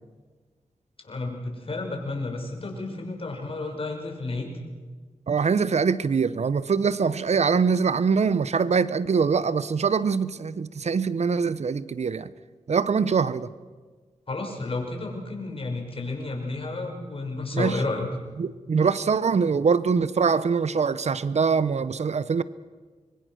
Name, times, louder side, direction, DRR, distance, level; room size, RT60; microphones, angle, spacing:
voice 1, 1.0-4.5 14.3-18.1, left 2 dB, 45° left, 5.7 m, -31 dB
voice 2, 5.3-12.3 12.7-13.5 17.5-17.8 18.4-22.4, right 5 dB, 60° right, 0.8 m, -23 dB
25.0 x 22.5 x 6.4 m
cardioid pair, 65°, 13 cm